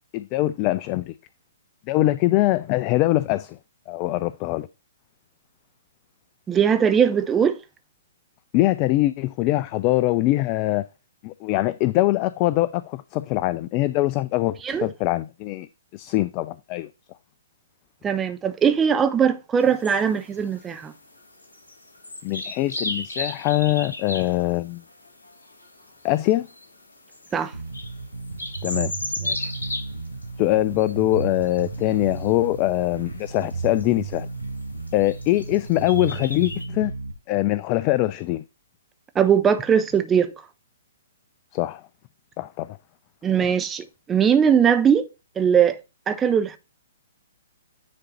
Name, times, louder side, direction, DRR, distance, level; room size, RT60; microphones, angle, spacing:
voice 1, 0.1-1.1 1.9-3.6 3.9-4.7 8.5-10.8 11.2-15.7 15.9-16.9 22.2-24.8 26.0-26.5 28.6-28.9 29.2-29.5 30.4-34.3 34.9-36.9 37.3-38.4 41.5-41.8 42.4-42.8 43.4-43.5, left 17 dB, 30° left, 0.3 m, -23 dB
voice 2, 6.5-7.6 14.6-14.9 18.0-20.9 27.3-27.5 39.2-40.3 43.2-45.1 45.4-45.8 46.1-46.6, right 7 dB, 15° right, 0.7 m, -20 dB
sound 1, 19.6-36.7, left 2 dB, 70° left, 2.6 m, -37 dB
Bass guitar, 27.5-37.1, right 4 dB, 85° right, 1.6 m, -34 dB
9.7 x 3.7 x 4.2 m
figure-of-eight pair, 120°, 0 cm